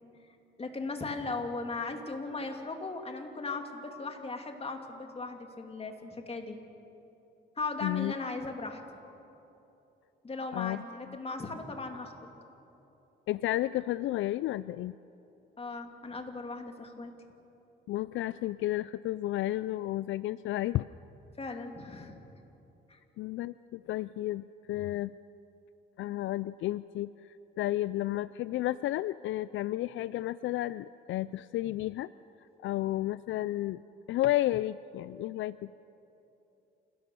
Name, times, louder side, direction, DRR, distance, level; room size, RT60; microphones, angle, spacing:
voice 1, 0.6-6.6 7.6-8.8 10.2-12.3 15.6-17.1 21.4-22.2 22.9-23.0, left 3 dB, 30° left, 4 dB, 2.6 m, -38 dB
voice 2, 7.8-8.1 10.5-10.8 13.3-15.0 17.9-20.9 21.5-21.6 23.2-25.1 26.0-32.1 32.6-33.8 34.1-35.7, left 15 dB, 75° left, 17 dB, 0.4 m, -32 dB
28.0 x 17.5 x 6.9 m, 3.0 s
cardioid pair, 90°, 20 cm